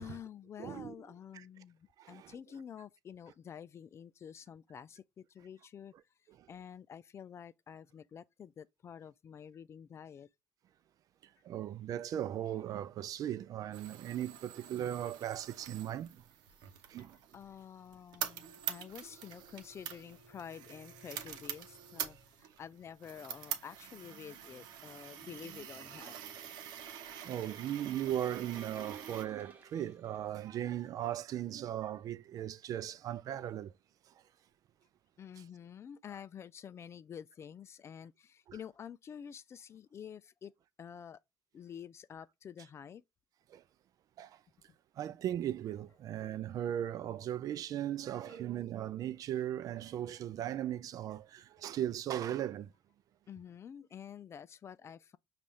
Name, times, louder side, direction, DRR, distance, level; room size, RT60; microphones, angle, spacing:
voice 1, 0.0-5.9 6.5-10.3 17.0-17.1 17.3-26.5 26.9-27.0 35.2-40.5 40.8-41.2 41.5-43.0 48.3-48.4 53.3-55.2, left 8 dB, 35° left, 0.4 m, -49 dB
voice 2, 0.6-0.9 1.3-1.4 2.0-2.3 6.4-6.5 11.2-16.2 16.9-17.2 27.2-33.7 34.1-34.2 43.5-43.6 44.2-44.4 45.0-52.7, right 11 dB, 55° right, 0.4 m, -38 dB
sound 1, 13.7-29.2, right 9 dB, 70° right, 0.8 m, -46 dB
sound 2, 27.9-31.1, right 1 dB, 25° right, 0.9 m, -57 dB
5.3 x 2.5 x 3.1 m
supercardioid pair, 85°, 7 cm